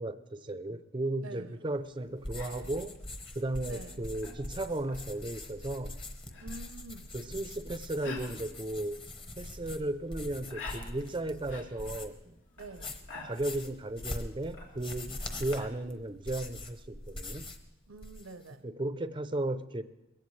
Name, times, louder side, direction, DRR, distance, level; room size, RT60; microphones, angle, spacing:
voice 1, 0.0-3.0 3.3-6.0 7.1-9.0 9.4-12.4 13.2-17.5 18.6-19.8, right 1 dB, 25° right, 0.5 m, -35 dB
voice 2, 1.2-1.7 3.7-4.1 6.4-7.1 12.6-13.0 17.9-18.6, right 3 dB, 75° right, 0.7 m, -47 dB
sound 1, 1.7-15.7, left 4 dB, 75° left, 3.2 m, -50 dB
sound 2, 2.2-12.2 12.6-17.7 17.9-18.5, left 2 dB, 25° left, 1.1 m, -43 dB
21.5 x 16.0 x 3.3 m
head